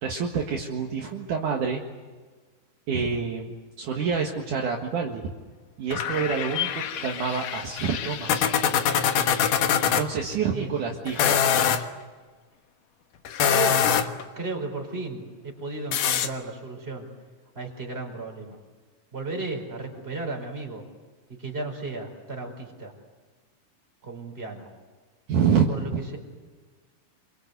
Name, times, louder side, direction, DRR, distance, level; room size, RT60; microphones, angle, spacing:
voice 1, 0.0-1.8 2.9-5.3 5.8-8.5 10.0-11.5 25.3-26.0, right 6 dB, 60° right, 0 dB, 3.0 m, -27 dB
sound 1, 5.9-10.1 11.1-11.8 13.3-14.2 15.9-16.3, left 8 dB, 65° left, 2.6 m, -24 dB
voice 2, 13.5-13.9 14.3-17.1 17.5-18.6 19.1-20.8 21.3-22.9 24.0-24.7 25.7-26.2, right 3 dB, 15° right, 2 dB, 4.9 m, -34 dB
28.0 x 23.5 x 8.2 m, 1.4 s
omnidirectional pair, 4.3 m